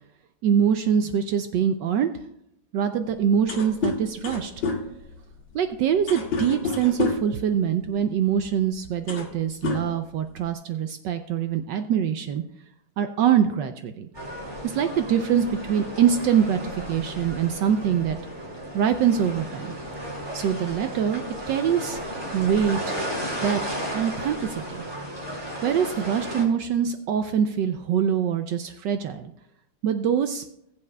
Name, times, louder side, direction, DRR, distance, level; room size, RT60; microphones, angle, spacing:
voice 1, 0.4-2.1 2.7-4.5 5.5-12.4 13.0-14.1 14.6-18.2 18.7-19.7 20.3-22.0 22.3-23.0 23.4-23.6 23.9-24.8 25.6-29.3 29.8-30.4, right 8 dB, 75° right, 8 dB, 1.0 m, -24 dB
sound 1, 3.1-3.2 3.4-7.4 8.4-8.5 8.9-9.4 9.6-10.5, left 4 dB, 60° left, 2.0 m, -29 dB
sound 2, 14.1-26.4, equal, 20° right, 3.3 m, -34 dB
20.0 x 7.3 x 2.2 m, 0.76 s
omnidirectional pair, 2.4 m